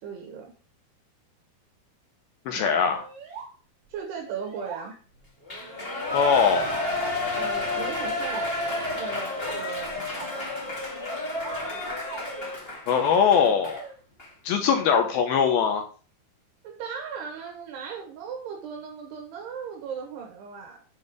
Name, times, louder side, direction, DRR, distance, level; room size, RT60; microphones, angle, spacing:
voice 1, 0.0-0.5 2.5-2.7 3.9-5.0 7.3-10.5 14.6-14.8 16.6-20.8, right 6 dB, 80° right, 1 dB, 3.5 m, -38 dB
voice 2, 2.5-3.1 6.1-6.7 12.9-13.8 14.4-15.9, left 7 dB, 75° left, 5 dB, 2.6 m, -21 dB
sound 1, 2.9-3.5 3.8-3.9 4.3-5.3 6.1-7.1 7.9-8.5 9.2-10.5 11.2-12.5 12.8-13.3 13.6-14.0 14.9-15.5, right 5 dB, 50° right, 2.7 m, -43 dB
Shout / Cheering, 5.5-13.8 14.2-14.3, left 2 dB, 25° left, 1.3 m, -31 dB
8.6 x 4.4 x 5.0 m, 0.37 s
omnidirectional pair, 4.8 m